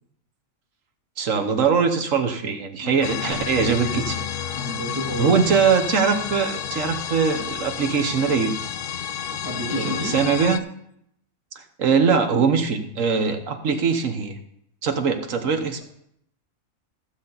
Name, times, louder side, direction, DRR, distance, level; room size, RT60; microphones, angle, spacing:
voice 1, 1.2-4.2 5.2-8.6 9.7-10.6 11.5-14.4 14.8-15.8, right 6 dB, 70° right, 6 dB, 1.4 m, -22 dB
sound 1, 3.0-10.6, left 9 dB, 65° left, 0.5 m, -30 dB
voice 2, 4.5-5.4 9.4-10.2, equal, 15° right, -2 dB, 1.8 m, -30 dB
15.0 x 7.3 x 4.0 m, 0.72 s
omnidirectional pair, 1.4 m